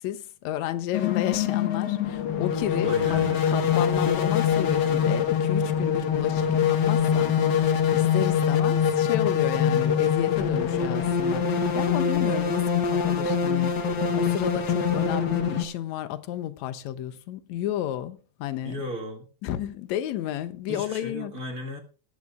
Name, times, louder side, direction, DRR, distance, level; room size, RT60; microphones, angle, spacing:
voice 1, 0.0-13.8 14.2-18.8 19.4-21.3, left 12 dB, 80° left, 2.0 m, -32 dB
sound 1, 0.9-15.6, left 7 dB, 55° left, 1.3 m, -24 dB
voice 2, 2.8-3.4 18.6-19.2 20.7-21.8, right 1 dB, 35° right, 1.5 m, -35 dB
22.5 x 9.5 x 2.3 m
omnidirectional pair, 3.3 m